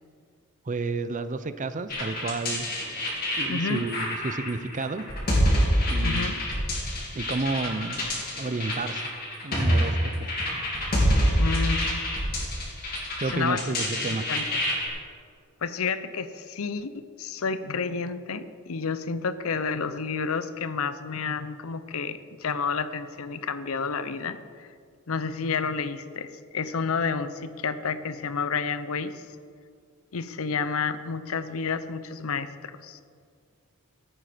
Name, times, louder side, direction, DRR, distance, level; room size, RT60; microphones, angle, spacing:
voice 1, 0.7-2.7 3.3-5.1 5.9-6.3 7.1-8.1 8.4-9.1 9.4-10.4 13.2-14.3, right 3 dB, 35° right, 12 dB, 0.6 m, -31 dB
sound 1, 1.9-14.9, equal, 45° left, 3.6 m, -27 dB
voice 2, 3.5-3.9 6.0-6.4 11.2-12.0 13.3-13.7 14.3-14.6 15.6-24.7 25.1-29.3 30.1-33.0, left 5 dB, 70° left, 13 dB, 0.7 m, -30 dB
15.0 x 9.0 x 5.1 m, 2.2 s
head